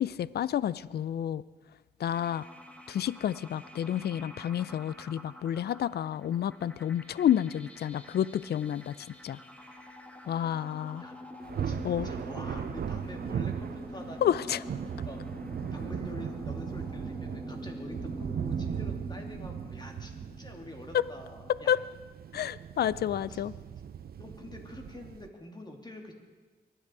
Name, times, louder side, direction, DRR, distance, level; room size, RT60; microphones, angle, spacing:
voice 1, 0.0-1.4 2.0-2.5 2.9-8.9 9.2-9.4 10.3-11.0 11.8-12.1 14.2-14.6 20.9-21.0 21.7-21.8 22.3-23.5, left 10 dB, 70° left, 19 dB, 0.4 m, -29 dB
sound 1, 2.1-21.6, equal, 10° left, 1.6 m, -45 dB
Thunder, 11.4-25.3, right 8 dB, 65° right, 0.6 m, -38 dB
voice 2, 11.6-15.2 15.7-21.8 23.3-23.5 24.2-26.1, left 1 dB, 25° left, 2 dB, 3.1 m, -46 dB
24.0 x 10.0 x 4.8 m, 1.4 s
cardioid pair, 60°, 17 cm